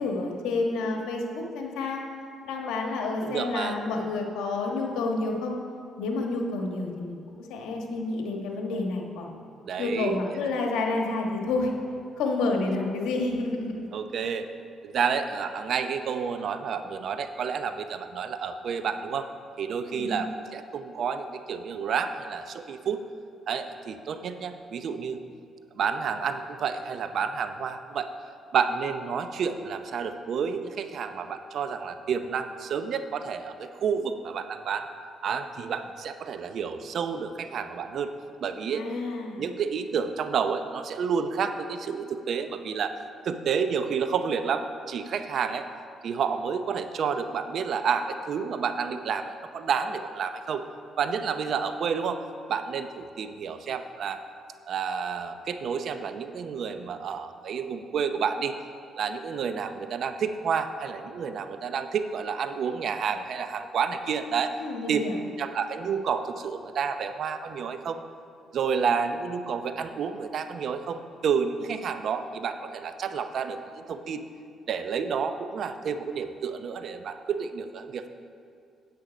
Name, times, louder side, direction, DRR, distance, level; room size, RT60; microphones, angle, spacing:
voice 1, 0.0-2.0 2.4-5.6 6.0-9.4 9.8-11.7 12.2-13.9 19.9-20.2 38.6-39.4 64.6-65.2, left 3 dB, 90° left, 1 dB, 1.3 m, -29 dB
voice 2, 3.2-3.8 9.7-10.2 13.9-14.5 14.8-19.3 19.6-23.0 23.5-25.2 25.8-28.1 28.5-34.9 35.2-38.1 38.4-38.8 39.4-43.0 43.2-45.7 46.0-50.6 51.0-52.2 52.5-54.2 54.7-58.6 59.0-64.5 64.9-65.0 65.4-68.0 68.5-74.3 74.7-78.1, right 6 dB, 60° right, 9 dB, 0.6 m, -30 dB
9.2 x 8.3 x 5.0 m, 2.5 s
cardioid pair, 85°, 0 cm